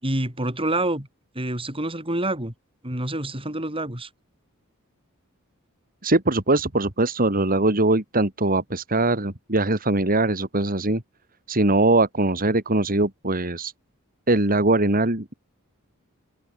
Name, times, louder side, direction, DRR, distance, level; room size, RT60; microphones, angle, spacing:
voice 1, 0.0-1.1 1.3-2.5 2.8-4.1, right 1 dB, 25° right, 6.7 m, -27 dB
voice 2, 6.0-11.0 11.5-13.7 14.3-15.3, right 2 dB, 40° right, 3.4 m, -21 dB
open air
head